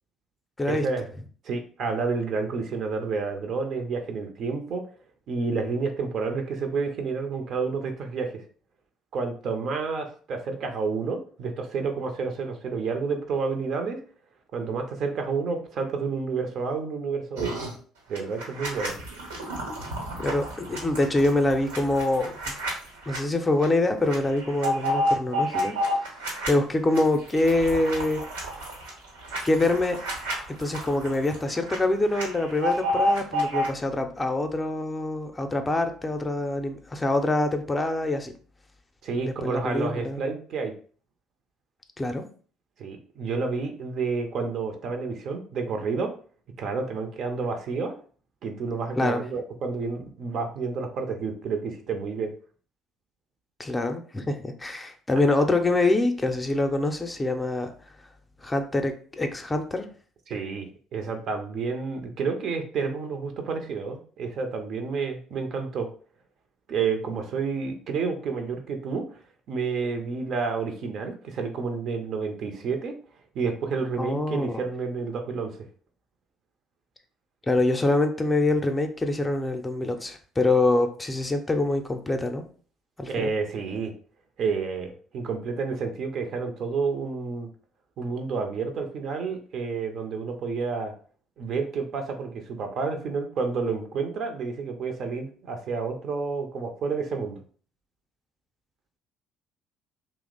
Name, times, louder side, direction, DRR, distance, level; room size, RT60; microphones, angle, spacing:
voice 1, 0.7-1.1 1.4-4.8 5.3-8.4 9.1-14.0 14.5-17.5 18.1-19.0 39.0-40.7 42.8-46.1 46.6-47.9 48.4-52.3 60.3-65.9 66.7-69.0 69.5-72.9 73.3-75.7 83.1-83.9 84.4-87.5 88.0-90.9 91.4-97.4, right 4 dB, 55° right, 5 dB, 0.6 m, -30 dB
sound 1, 17.4-17.7 18.1-23.2 23.6-23.7 24.0-26.5 26.9-33.7, equal, 85° right, 1.0 m, -30 dB
voice 2, 20.2-22.5 23.1-25.7 26.5-28.2 29.4-30.0 30.5-38.3 39.2-40.2 42.0-42.3 49.0-49.2 53.6-57.7 58.4-59.9 74.0-74.6 77.5-82.4 83.0-83.3, left 2 dB, 20° left, 6 dB, 0.5 m, -25 dB
2.8 x 2.0 x 3.8 m, 0.43 s
hypercardioid pair, 55°, 0 cm